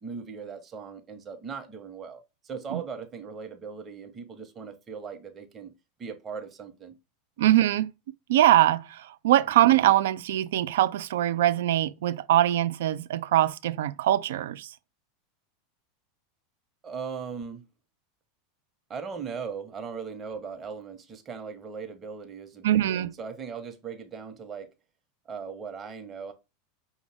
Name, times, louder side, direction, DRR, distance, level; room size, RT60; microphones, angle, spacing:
voice 1, 0.0-5.7 6.0-7.0 7.4-7.5 9.5-9.6 16.8-17.6 18.9-24.7 25.2-26.3, right 6 dB, 30° right, 0.9 m, -39 dB
voice 2, 7.4-7.9 8.3-14.7 22.6-23.1, right 13 dB, 65° right, 0.3 m, -22 dB
5.3 x 2.3 x 3.4 m
figure-of-eight pair, 85°, 0 cm